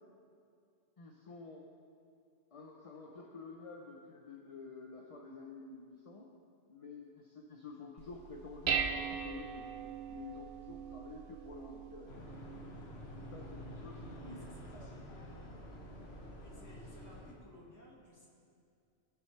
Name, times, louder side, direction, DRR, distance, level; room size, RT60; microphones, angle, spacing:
voice 1, 1.0-1.7 2.5-6.3 6.7-9.7 10.1-12.1 13.3-14.9, left 4 dB, 35° left, 0 dB, 0.6 m, -50 dB
Dishes pots and pans, 8.0-17.2, right 7 dB, 60° right, 0.7 m, -42 dB
sound 1, 12.1-17.3, left 2 dB, 60° left, 1.3 m, -49 dB
voice 2, 14.2-15.0 16.4-18.3, left 1 dB, 15° left, -4 dB, 1.6 m, -59 dB
17.5 x 7.0 x 3.2 m, 2.4 s
omnidirectional pair, 1.2 m